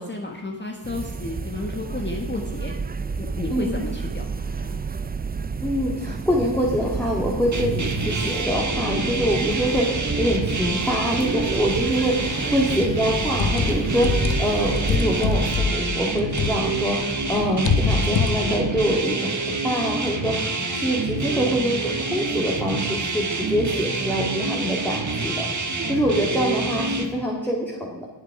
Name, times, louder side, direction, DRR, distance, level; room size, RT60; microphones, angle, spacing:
voice 1, 0.0-2.8 3.2-4.8 12.3-12.8 26.1-26.4, left 2 dB, 25° left, 1 dB, 1.4 m, -33 dB
sound 1, 0.8-15.6, right 4 dB, 20° right, 0.4 m, -31 dB
voice 2, 5.6-28.0, equal, 5° left, -3 dB, 2.0 m, -25 dB
sound 2, 7.5-27.1, right 3 dB, 40° right, 1.5 m, -27 dB
sound 3, 13.4-16.9 17.2-18.8, left 5 dB, 85° left, 1.0 m, -24 dB
20.5 x 7.5 x 4.8 m, 1.2 s
wide cardioid pair, 125°, 46 cm